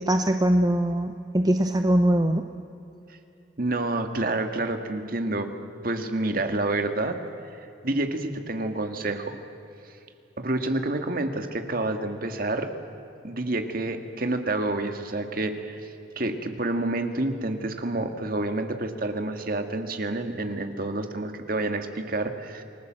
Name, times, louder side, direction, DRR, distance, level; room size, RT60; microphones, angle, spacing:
voice 1, 0.0-2.5, right 1 dB, 20° right, 6 dB, 0.8 m, -22 dB
voice 2, 3.6-5.5 5.8-7.2 7.5-9.4 10.4-12.7 13.2-22.6, right 2 dB, 50° right, 6 dB, 1.9 m, -28 dB
29.0 x 20.0 x 7.6 m, 2.8 s
head